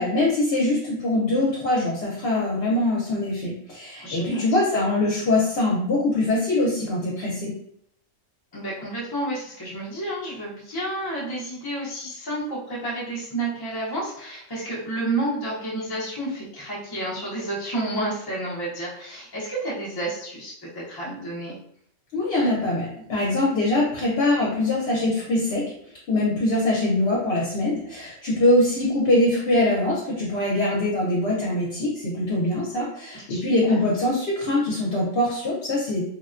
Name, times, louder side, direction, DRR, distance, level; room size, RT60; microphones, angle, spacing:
voice 1, 0.0-7.5 22.1-25.7 26.1-36.0, left 2 dB, 55° left, -4 dB, 0.9 m, -23 dB
voice 2, 4.0-4.4 8.5-21.6 33.3-33.4 33.7-33.8, right 1 dB, 30° left, -6 dB, 0.4 m, -30 dB
3.6 x 2.2 x 2.4 m, 0.70 s
omnidirectional pair, 1.4 m